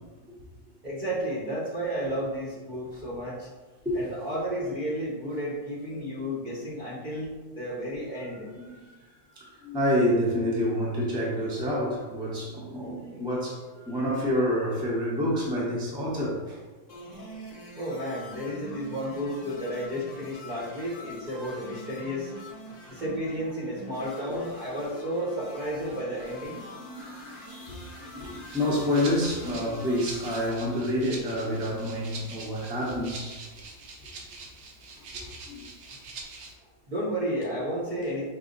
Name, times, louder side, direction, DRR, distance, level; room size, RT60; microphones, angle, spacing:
voice 1, 0.8-3.5 3.9-8.5 17.8-22.3 22.9-26.6 36.9-38.2, equal, 40° right, -7 dB, 0.8 m, -32 dB
voice 2, 8.6-8.9 9.3-16.6 26.8-33.5 35.1-35.6, equal, 5° right, -5 dB, 0.6 m, -28 dB
sound 1, 16.9-30.5, equal, 35° left, 0.8 m, -45 dB
Rattle (instrument), 28.4-36.5, right 3 dB, 80° right, 1.2 m, -44 dB
4.9 x 2.0 x 3.8 m, 1.3 s
omnidirectional pair, 1.6 m